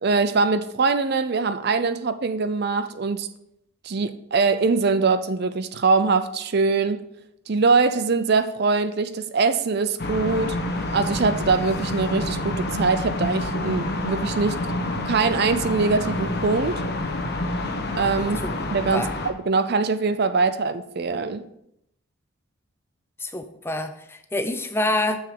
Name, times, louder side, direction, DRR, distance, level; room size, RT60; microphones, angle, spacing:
voice 1, 0.0-3.3 3.8-7.0 7.5-10.6 10.9-14.6 15.1-16.8 18.0-21.4, right 4 dB, 50° right, 0.5 m, -23 dB
sound 1, 10.0-19.3, left 1 dB, 50° left, 1.0 m, -28 dB
voice 2, 23.2-25.2, left 1 dB, 10° left, 0.5 m, -26 dB
7.1 x 6.4 x 4.9 m
head